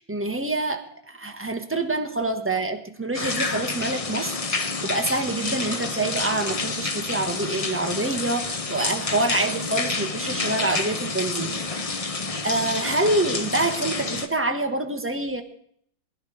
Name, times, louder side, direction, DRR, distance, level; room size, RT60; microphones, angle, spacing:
voice 1, 0.0-12.0 12.4-15.4, right 2 dB, 10° right, 5 dB, 0.9 m, -26 dB
sound 1, 3.1-14.3, left 3 dB, 60° left, 0.3 m, -29 dB
20.5 x 11.0 x 5.0 m, 0.65 s
omnidirectional pair, 2.2 m